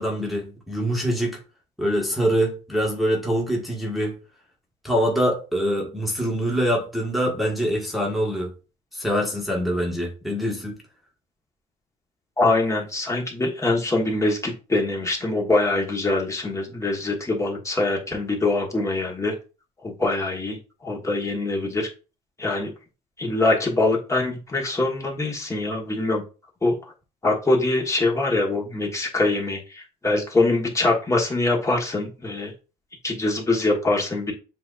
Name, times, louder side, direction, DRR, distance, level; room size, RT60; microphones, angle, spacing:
voice 1, 0.0-1.4 1.8-4.2 4.8-8.5 8.9-10.8, equal, ahead, 1.3 m, -24 dB
voice 2, 12.4-19.3 19.8-20.6 20.8-21.9 22.4-22.7 23.2-26.2 26.6-26.7 27.2-32.5 33.0-34.3, left 2 dB, 20° left, 1.2 m, -23 dB
7.5 x 2.6 x 2.4 m
cardioid pair, 110°, 17 cm